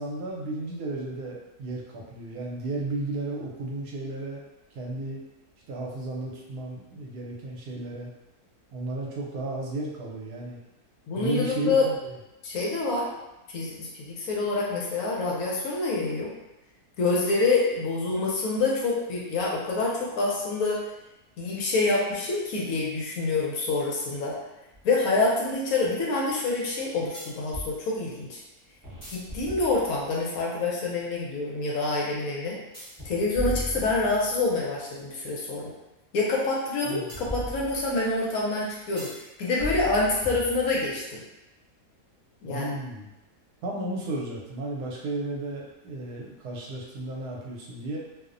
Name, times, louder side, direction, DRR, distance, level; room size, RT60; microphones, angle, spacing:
voice 1, 0.0-4.4 4.7-5.2 5.7-8.1 8.7-10.6 11.1-12.1 36.8-37.1 42.4-43.1 43.6-48.0, right 2 dB, 85° right, -3 dB, 1.1 m, -33 dB
voice 2, 11.1-11.9 12.4-13.1 13.5-16.3 17.0-20.9 21.4-24.4 24.8-28.4 29.1-32.6 33.0-35.7 36.1-41.2 42.4-42.7, left 3 dB, 70° left, -3 dB, 1.0 m, -27 dB
sound 1, 24.7-24.8 27.1-27.8 28.8-30.1 32.7-34.4 37.1-38.1 39.0-39.3 39.6-41.0, equal, 15° right, 0.7 m, -37 dB
2.7 x 2.0 x 2.5 m, 0.97 s
omnidirectional pair, 1.6 m